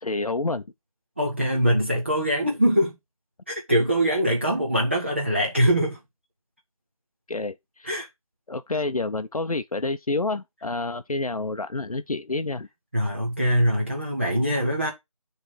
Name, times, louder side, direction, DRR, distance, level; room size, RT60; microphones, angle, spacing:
voice 1, 0.0-0.6 7.3-7.9 8.5-12.7, left 3 dB, 90° left, 0.6 m, -28 dB
voice 2, 1.2-3.0 3.5-6.0 7.8-8.1 12.9-14.9, equal, 20° right, 0.7 m, -23 dB
6.8 x 3.3 x 5.5 m
figure-of-eight pair, 165°, 18 cm